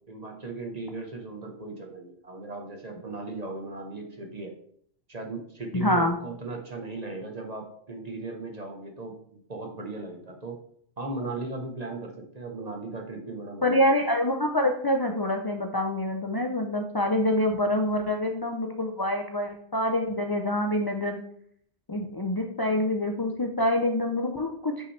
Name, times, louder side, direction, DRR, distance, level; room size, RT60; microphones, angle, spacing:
voice 1, 0.1-4.5 5.1-10.6 11.0-13.9, right 2 dB, 35° right, 3 dB, 1.1 m, -37 dB
voice 2, 5.7-6.1 13.6-21.2 21.9-24.9, left 1 dB, 30° left, 2 dB, 0.5 m, -26 dB
8.2 x 5.7 x 3.2 m, 0.64 s
omnidirectional pair, 1.2 m